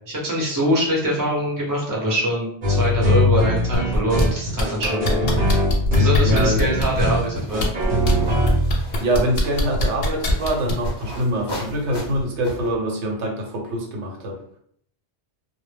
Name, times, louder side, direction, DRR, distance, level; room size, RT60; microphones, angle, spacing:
voice 1, 0.1-5.3 5.9-7.7, equal, 20° right, -4 dB, 0.7 m, -23 dB
sound 1, 2.6-9.0 9.7-9.8, left 1 dB, 50° right, 0.8 m, -21 dB
sound 2, 3.7-4.2 4.6-7.0 7.5-8.1 8.5-10.9 11.9-12.0, left 1 dB, 65° left, 0.7 m, -22 dB
voice 2, 6.2-6.6 9.0-14.4, right 1 dB, 80° right, 1 dB, 0.9 m, -24 dB
sound 3, 6.4-12.8, equal, 30° left, 0.5 m, -37 dB
2.1 x 2.0 x 3.2 m, 0.65 s
omnidirectional pair, 1.2 m